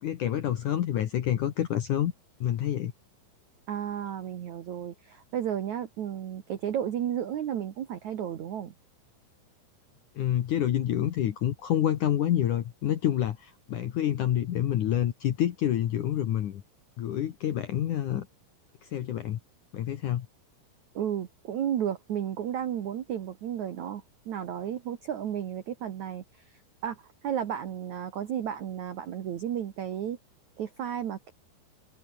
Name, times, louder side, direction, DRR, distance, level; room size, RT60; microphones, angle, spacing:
voice 1, 0.0-2.1 2.4-2.9 10.2-16.6 17.0-18.3 18.8-19.4 19.7-20.3, left 11 dB, 75° left, 1.8 m, -28 dB
voice 2, 3.7-8.7 20.9-26.2 26.8-30.2 30.6-31.3, right 9 dB, 70° right, 1.8 m, -33 dB
omnidirectional pair, 5.6 m